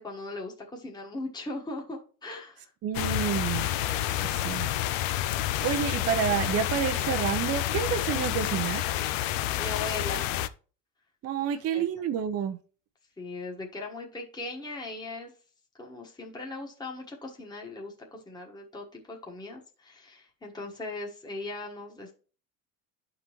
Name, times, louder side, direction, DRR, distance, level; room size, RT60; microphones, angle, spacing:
voice 1, 0.0-2.7 9.6-10.3 11.5-11.8 13.2-15.3 15.8-22.1, left 2 dB, 10° left, 1.3 m, -39 dB
voice 2, 2.8-3.7 4.2-4.7 5.6-8.8 11.2-12.6, right 8 dB, 40° right, 0.6 m, -29 dB
sound 1, 2.9-10.5, left 13 dB, 90° left, 0.5 m, -29 dB
11.5 x 3.8 x 3.0 m
supercardioid pair, 95°, 38 cm